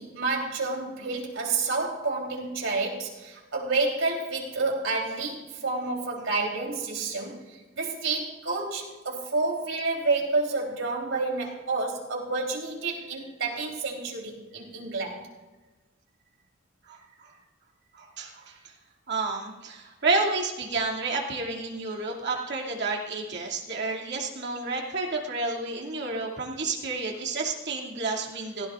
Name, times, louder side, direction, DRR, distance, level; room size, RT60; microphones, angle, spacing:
voice 1, 0.0-15.2, right 3 dB, 80° right, 0 dB, 3.6 m, -29 dB
voice 2, 16.9-17.3 17.9-18.7 19.1-28.7, right 3 dB, 60° right, -1 dB, 2.6 m, -30 dB
17.5 x 16.5 x 2.5 m, 1.2 s
head